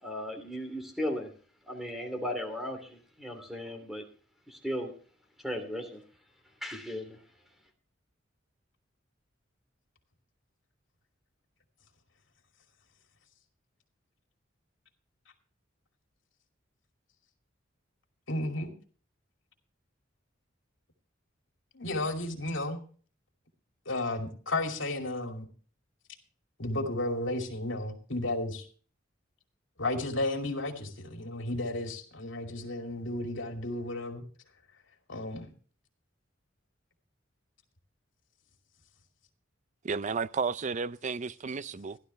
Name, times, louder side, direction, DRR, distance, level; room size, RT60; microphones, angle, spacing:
voice 1, 0.0-1.3 1.7-4.1 4.5-4.9 5.4-6.0 6.6-7.2, equal, ahead, 2.9 m, -36 dB
voice 2, 18.3-18.7 21.7-22.8 23.9-25.5 26.6-28.6 29.8-34.2 35.1-35.5, left 2 dB, 75° left, 2.6 m, -33 dB
voice 3, 39.8-42.0, right 5 dB, 40° right, 0.5 m, -32 dB
15.5 x 12.0 x 3.3 m
head